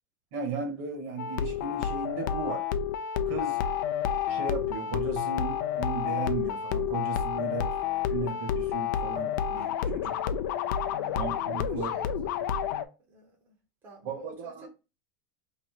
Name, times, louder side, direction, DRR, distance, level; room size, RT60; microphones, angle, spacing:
voice 1, 0.3-2.7 3.3-3.7 4.3-7.8 8.1-10.2 11.1-11.9 14.0-14.7, right 4 dB, 45° right, 1.1 m, -36 dB
sound 1, 1.2-12.8, left 8 dB, 65° left, 0.4 m, -30 dB
voice 2, 10.9-12.4 13.1-13.6 13.8-14.7, right 3 dB, 20° right, 0.7 m, -48 dB
3.0 x 2.7 x 4.3 m
supercardioid pair, 170°, 11 cm